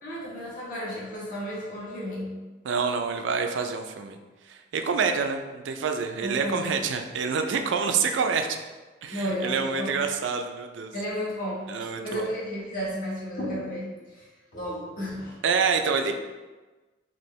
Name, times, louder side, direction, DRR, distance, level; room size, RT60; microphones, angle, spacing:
voice 1, 0.0-2.3 6.2-6.7 9.1-9.9 10.9-15.4, equal, 45° left, -7 dB, 1.3 m, -33 dB
voice 2, 2.6-4.2 4.5-8.5 9.0-10.9 11.7-12.3 15.4-16.1, right 5 dB, 70° right, 5 dB, 0.4 m, -27 dB
4.4 x 2.8 x 3.1 m, 1.2 s
head